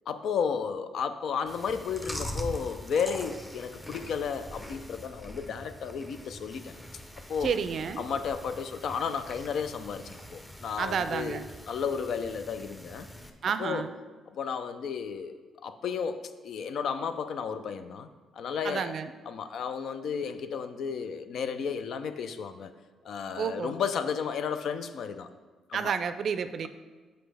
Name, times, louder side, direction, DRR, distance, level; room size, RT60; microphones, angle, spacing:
voice 1, 0.1-6.7 7.3-7.5 8.0-11.4 11.7-13.1 13.6-13.9 14.3-18.1 18.3-18.9 19.3-22.7 23.0-25.3 25.7-25.9, left 6 dB, 70° left, 10 dB, 0.5 m, -33 dB
Chewing mastication, 1.5-13.3, equal, 5° left, 0.7 m, -43 dB
voice 2, 7.4-8.0 10.8-11.4 13.4-13.9 18.6-19.1 23.4-23.7 25.7-26.7, right 6 dB, 60° right, 11 dB, 0.4 m, -30 dB
7.6 x 5.2 x 3.4 m, 1.3 s
cardioid pair, 90°, 0 cm